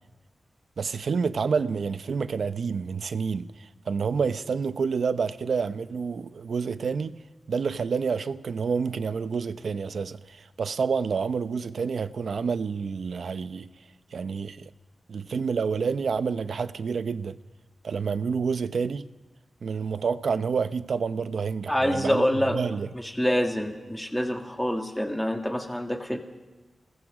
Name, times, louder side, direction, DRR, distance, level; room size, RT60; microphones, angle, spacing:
voice 1, 0.8-7.2 7.5-13.7 14.1-14.7 15.1-17.4 17.8-19.1 19.6-22.3 22.5-22.9, right 5 dB, 70° right, 0.8 m, -28 dB
voice 2, 21.7-22.6 22.9-26.2, equal, 5° left, 1.8 m, -26 dB
29.5 x 20.5 x 5.0 m
wide cardioid pair, 150°, 0 cm